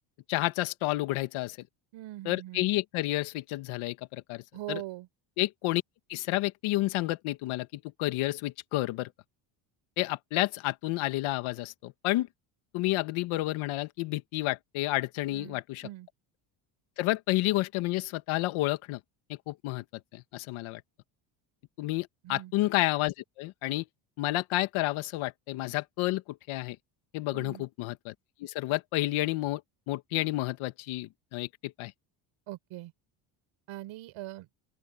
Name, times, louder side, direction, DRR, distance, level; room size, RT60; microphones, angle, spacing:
voice 1, 0.3-1.6 2.3-4.4 4.7-4.8 5.4-5.8 6.1-9.1 10.0-12.3 12.7-15.9 17.0-19.0 19.3-19.8 20.1-20.8 21.8-23.9 24.2-26.8 27.1-28.1 28.4-29.6 29.9-31.9, left 18 dB, 75° left, 1.7 m, -30 dB
voice 2, 1.9-2.7 4.5-5.1 15.3-16.1 22.2-22.5 27.3-27.6 32.5-32.9 33.7-34.5, right 16 dB, 70° right, 6.8 m, -42 dB
open air
cardioid pair, 115°, 49 cm